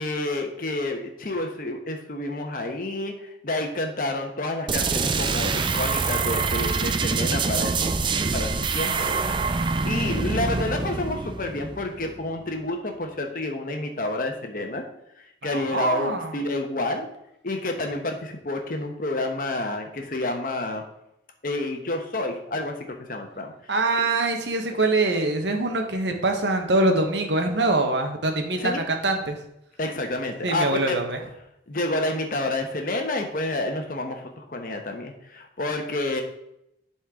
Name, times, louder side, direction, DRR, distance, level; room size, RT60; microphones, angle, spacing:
voice 1, 0.0-7.9 8.3-9.2 9.4-14.8 15.2-17.1 17.4-20.8 21.4-22.7 23.1-23.5 28.6-28.8 29.8-31.0 31.7-36.2, left 2 dB, 50° left, 4 dB, 1.1 m, -29 dB
sound 1, 4.7-12.3, right 4 dB, 25° right, 0.4 m, -25 dB
voice 2, 15.4-16.4 23.7-29.4 30.4-31.2, right 2 dB, 85° right, 4 dB, 1.2 m, -24 dB
10.5 x 4.3 x 3.7 m, 0.80 s
head